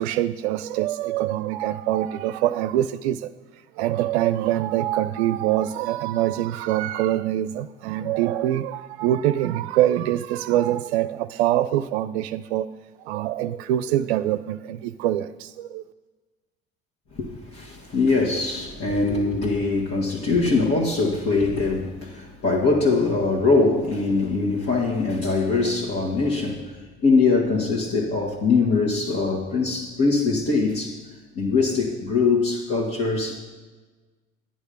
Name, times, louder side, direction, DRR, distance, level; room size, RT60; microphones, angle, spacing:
voice 1, 0.0-3.3 3.8-12.7 13.0-15.8, right 13 dB, 70° right, 12 dB, 0.5 m, -24 dB
voice 2, 17.1-26.8 27.0-31.0 31.4-33.4, left 3 dB, 45° left, -3 dB, 2.0 m, -22 dB
11.5 x 9.9 x 5.3 m, 1.3 s
hypercardioid pair, 65°, 33 cm